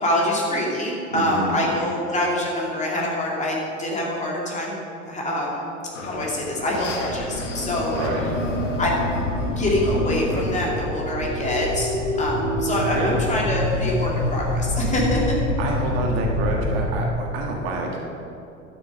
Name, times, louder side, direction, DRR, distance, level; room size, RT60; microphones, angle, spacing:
voice 1, 0.0-4.8 5.1-5.6 6.0-7.9 8.8-9.1 9.6-11.9 12.2-15.3, left 1 dB, 20° left, -3 dB, 2.4 m, -25 dB
voice 2, 1.1-1.6 7.9-8.2 12.9-13.2 15.6-18.0, right 2 dB, 50° right, 0 dB, 1.7 m, -27 dB
sound 1, 5.9-16.9, left 1 dB, 70° left, 1.4 m, -27 dB
sound 2, 10.3-14.1, right 1 dB, 20° right, 1.4 m, -31 dB
12.0 x 6.7 x 5.4 m, 2.6 s
figure-of-eight pair, 75°, 38 cm